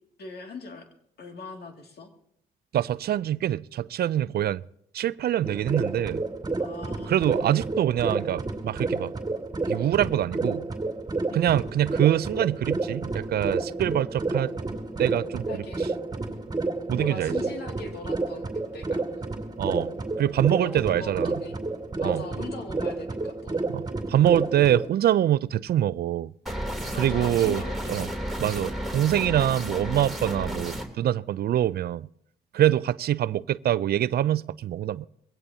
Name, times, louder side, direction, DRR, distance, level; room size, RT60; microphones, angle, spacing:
voice 1, 0.2-0.9 1.2-2.1 6.6-7.4 11.3-11.5 15.5-15.9 16.9-19.0 20.6-21.6 22.0-23.7 26.9-28.3 32.6-32.8, left 3 dB, 65° left, 2.4 m, -41 dB
voice 2, 2.7-4.6 4.9-6.2 7.1-9.1 9.7-10.7 11.3-14.5 15.0-15.4 16.9-17.3 19.6-19.9 20.2-21.3 22.0-22.2 23.7-26.3 26.9-27.6 27.9-28.1 28.4-32.1 32.5-35.0, right 11 dB, 60° right, 0.4 m, -24 dB
sound 1, 5.4-24.9, right 3 dB, 20° right, 2.5 m, -30 dB
sound 2, 26.5-30.8, equal, ahead, 3.1 m, -32 dB
22.0 x 16.5 x 2.8 m
supercardioid pair, 60°, 18 cm